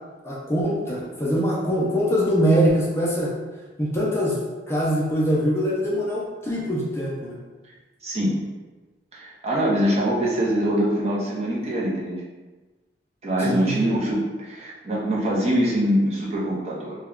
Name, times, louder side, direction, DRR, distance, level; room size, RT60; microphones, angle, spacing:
voice 1, 0.2-3.3 3.8-4.4 4.7-7.4 13.4-13.9, equal, 15° left, -5 dB, 0.4 m, -23 dB
voice 2, 8.0-8.4 9.1-12.2 13.2-17.0, equal, 35° right, -5 dB, 0.6 m, -23 dB
2.2 x 2.1 x 3.6 m, 1.2 s
head